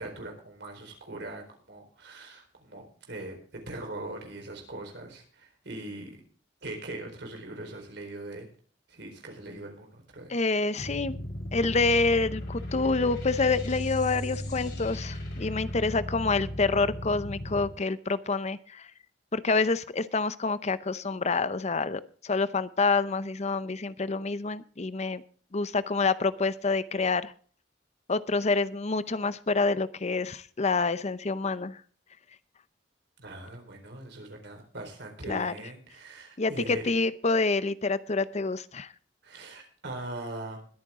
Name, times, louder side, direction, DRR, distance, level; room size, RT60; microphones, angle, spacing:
voice 1, 0.0-6.2 6.6-8.5 8.9-10.3 33.2-36.9 39.2-40.7, right 2 dB, 65° right, 3 dB, 4.3 m, -41 dB
voice 2, 10.3-11.1 11.5-18.9 19.3-25.2 25.5-27.3 28.1-31.8 35.3-35.5 36.4-38.9, left 3 dB, 40° left, 15 dB, 0.7 m, -27 dB
sound 1, 10.8-17.6, left 1 dB, 65° left, 7.0 m, -36 dB
21.0 x 8.9 x 3.7 m, 0.43 s
head